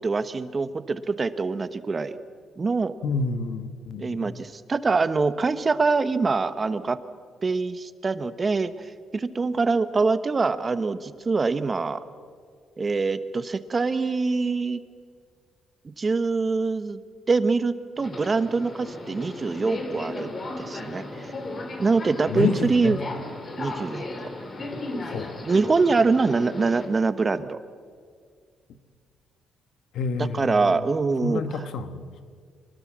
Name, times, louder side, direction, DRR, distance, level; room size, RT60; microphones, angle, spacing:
voice 1, 0.0-2.2 2.6-2.9 4.0-7.0 7.4-12.0 12.8-14.8 16.0-17.0 17.3-20.3 20.6-21.3 21.8-23.0 23.6-24.3 25.4-27.6 30.2-31.7, right 4 dB, 30° right, 1.1 m, -24 dB
voice 2, 3.0-4.4 22.3-22.9 25.0-25.3 29.9-30.7 31.2-32.0, left 4 dB, 75° left, 1.4 m, -29 dB
Subway metro underground, 18.0-26.9, left 2 dB, 40° left, 3.4 m, -36 dB
24.0 x 20.0 x 7.5 m
cardioid pair, 90°, 0 cm